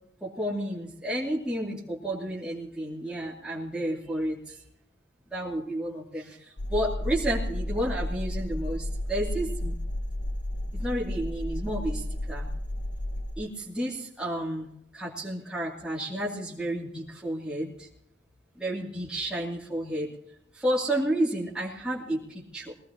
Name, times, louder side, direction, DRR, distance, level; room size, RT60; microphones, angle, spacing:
voice 1, 0.2-4.6 5.3-9.7 10.7-12.5 13.4-17.9 18.6-20.1 20.5-22.7, right 1 dB, 5° right, -8 dB, 2.6 m, -31 dB
sound 1, 6.6-13.3, left 1 dB, 70° left, 1.1 m, -32 dB
22.0 x 18.0 x 2.9 m, 0.73 s
head